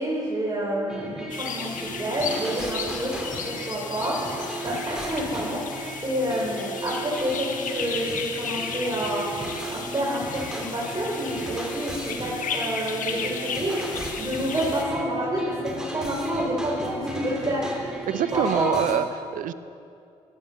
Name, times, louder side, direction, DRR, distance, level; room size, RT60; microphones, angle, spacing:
voice 1, 0.0-4.3 4.6-5.7 6.0-9.3 9.7-18.0 18.3-18.7, right 1 dB, 25° right, -6 dB, 4.2 m, -28 dB
sound 1, 0.9-19.0, right 2 dB, 5° right, 3.2 m, -35 dB
sound 2, 1.3-14.8, left 6 dB, 65° left, 1.5 m, -35 dB
voice 2, 18.1-19.5, right 9 dB, 70° right, 13 dB, 0.7 m, -25 dB
14.5 x 12.0 x 6.6 m, 2.5 s
hypercardioid pair, 50°, 14 cm